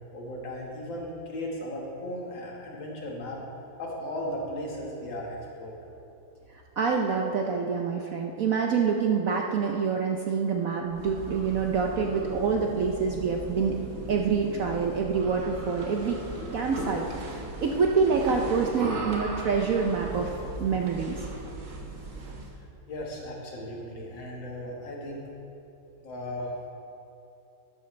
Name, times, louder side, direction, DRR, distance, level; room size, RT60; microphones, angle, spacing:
voice 1, 0.1-3.4 3.8-5.8 22.9-25.3 26.0-26.5, left 1 dB, 75° left, -2 dB, 2.4 m, -36 dB
voice 2, 6.5-13.8 14.1-16.2 16.5-21.2, right 5 dB, 65° right, 1 dB, 0.8 m, -26 dB
sound 1, 10.9-22.6, right 2 dB, 45° right, 1.4 m, -38 dB
12.5 x 11.0 x 3.2 m, 2.9 s
omnidirectional pair, 2.1 m